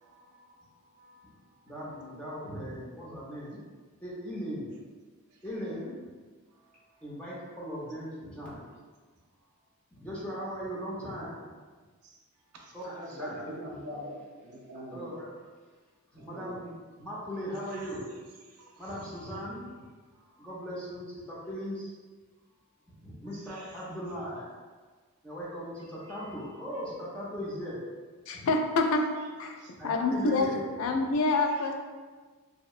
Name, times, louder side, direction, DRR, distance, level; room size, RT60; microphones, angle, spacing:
voice 1, 0.0-2.2 5.3-5.6 6.5-7.0 12.0-12.2 12.5-12.7 17.7-17.9 18.4-19.3 20.1-20.5 23.3-23.9 26.0-26.3 29.6-29.7 31.5-31.7, right 3 dB, 90° right, 0 dB, 0.4 m, -57 dB
voice 2, 1.7-3.6 4.0-4.7 5.4-6.1 7.0-8.7 10.0-11.6 12.7-13.5 14.9-15.3 16.1-18.0 18.8-19.7 20.4-21.9 22.9-24.5 25.2-27.8 28.3-28.5 29.8-30.6, equal, 5° left, -8 dB, 0.5 m, -38 dB
voice 3, 12.8-14.1 14.4-15.1 16.2-16.5, equal, 55° right, -6 dB, 0.7 m, -41 dB
voice 4, 28.3-29.1 29.4-30.5 30.8-31.7, left 3 dB, 65° left, 3 dB, 0.3 m, -27 dB
2.7 x 2.0 x 2.4 m, 1.4 s
head